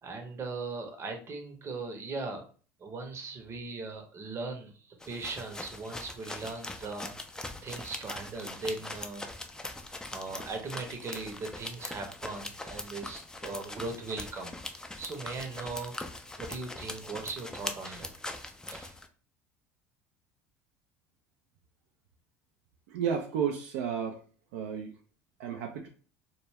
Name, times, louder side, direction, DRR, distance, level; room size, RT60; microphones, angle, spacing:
voice 1, 0.0-2.5 2.8-7.1 7.6-9.3 10.1-14.5 15.0-16.1 16.4-18.1 18.7-19.0, right 3 dB, 35° right, 4 dB, 0.7 m, -39 dB
sound 1, 5.0-19.1, left 2 dB, 10° left, 0.4 m, -42 dB
voice 2, 22.9-24.2 24.5-24.9 25.4-25.9, right 7 dB, 70° right, 2 dB, 0.4 m, -32 dB
2.2 x 2.1 x 3.3 m, 0.40 s
hypercardioid pair, 75°, 8 cm